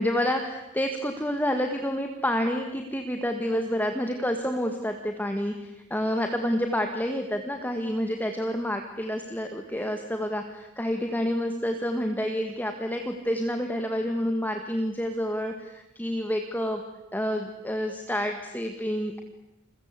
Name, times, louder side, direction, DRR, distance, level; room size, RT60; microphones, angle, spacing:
voice 1, 0.0-16.8 17.1-19.2, equal, 10° left, 5 dB, 1.7 m, -28 dB
29.5 x 22.5 x 8.4 m, 0.97 s
head